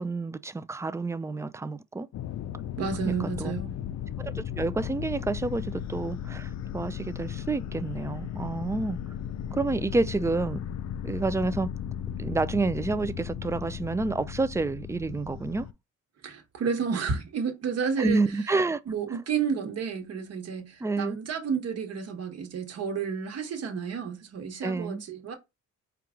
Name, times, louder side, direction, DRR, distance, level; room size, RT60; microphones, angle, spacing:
voice 1, 0.0-2.1 3.0-3.5 4.2-9.0 9.5-10.6 11.0-11.7 12.2-15.7 18.0-18.8 20.8-21.2 24.6-25.0, right 3 dB, 10° right, 0.3 m, -29 dB
sound 1, 2.1-15.7, left 9 dB, 60° left, 0.5 m, -36 dB
voice 2, 2.8-3.8 16.2-18.2 18.9-25.3, right 6 dB, 55° right, 1.2 m, -31 dB
4.6 x 2.3 x 3.6 m
cardioid pair, 90°, 30 cm